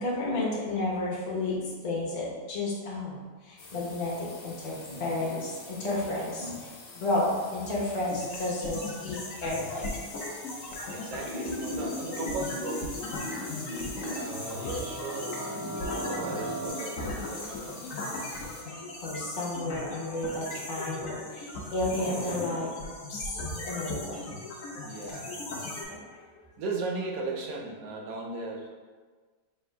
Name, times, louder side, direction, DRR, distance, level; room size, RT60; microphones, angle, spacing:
voice 1, 0.0-3.2 3.4-10.0 11.2-12.7 13.2-14.3 14.6-14.7 18.6-22.7 23.1-23.4 23.6-24.8 25.9-26.2, left 2 dB, 40° left, -6 dB, 0.6 m, -32 dB
sound 1, 3.6-18.6, left 3 dB, 90° left, 1.5 m, -48 dB
sound 2, 8.1-25.8, left 2 dB, 60° left, 0.9 m, -38 dB
voice 2, 10.9-12.9 14.1-17.9 24.7-25.5 26.6-28.7, right 2 dB, 65° right, 0 dB, 0.9 m, -37 dB
sound 3, 14.1-16.7, right 2 dB, 20° right, 0.6 m, -37 dB
3.4 x 2.6 x 4.4 m, 1.5 s
omnidirectional pair, 1.9 m